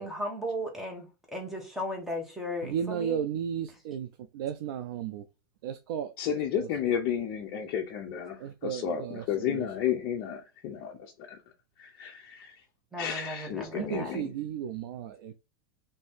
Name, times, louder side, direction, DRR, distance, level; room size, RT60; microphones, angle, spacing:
voice 1, 0.0-3.2 12.9-14.1, equal, ahead, 0.7 m, -36 dB
voice 2, 2.6-4.1 4.3-5.2 5.6-6.1 6.6-6.7 8.4-9.7 13.8-15.3, right 8 dB, 75° right, 0.4 m, -34 dB
voice 3, 6.2-11.4 11.8-12.5 13.0-14.3, left 9 dB, 40° left, 0.5 m, -32 dB
2.6 x 2.6 x 3.4 m
supercardioid pair, 170°, 12 cm